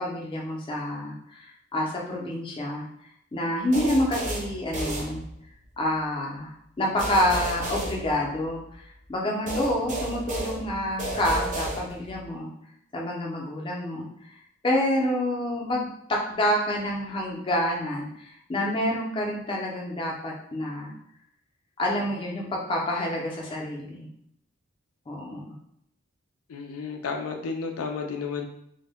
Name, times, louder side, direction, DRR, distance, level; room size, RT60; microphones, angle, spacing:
voice 1, 0.0-2.9 3.3-5.2 5.8-6.5 6.8-8.8 9.1-12.5 12.9-14.1 14.6-20.9 21.8-24.1 25.1-25.5, left 1 dB, 25° left, -2 dB, 0.5 m, -28 dB
sound 1, 3.7-5.7 7.0-8.7 9.5-12.2, right 1 dB, 35° right, 0.5 m, -33 dB
voice 2, 26.5-28.5, left 5 dB, 85° left, 4 dB, 0.4 m, -32 dB
2.1 x 2.0 x 3.4 m, 0.72 s
head